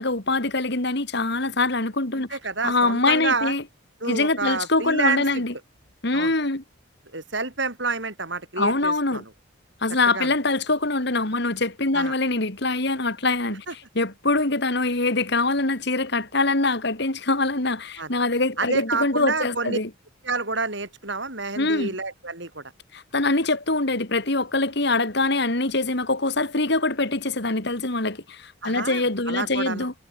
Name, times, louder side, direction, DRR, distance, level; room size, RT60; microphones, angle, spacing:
voice 1, 0.0-2.4 2.6-3.6 4.0-5.5 6.0-6.6 8.6-9.2 9.8-19.9 21.6-21.9 22.9-29.9, left 2 dB, 55° left, 2.8 m, -24 dB
voice 2, 2.1-3.5 4.0-5.2 6.1-6.3 7.1-9.3 10.1-10.3 11.9-12.2 13.7-13.8 18.0-18.1 18.6-19.8 20.2-22.6 28.6-29.9, right 3 dB, 60° right, 6.9 m, -29 dB
head